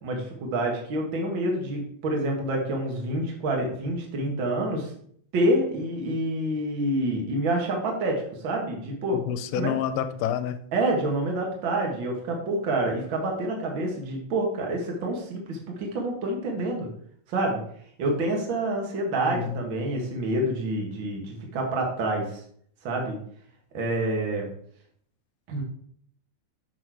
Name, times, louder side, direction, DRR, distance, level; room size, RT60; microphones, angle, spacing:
voice 1, 0.0-4.9 5.3-9.2 9.5-9.7 10.7-16.9 17.3-17.6 18.0-22.4 22.8-23.2 23.7-24.5 25.5-25.6, right 1 dB, 85° right, 0 dB, 1.0 m, -27 dB
voice 2, 9.3-10.6 19.3-19.6, left 9 dB, 85° left, 11 dB, 2.4 m, -28 dB
6.3 x 6.0 x 4.6 m, 0.62 s
omnidirectional pair, 4.5 m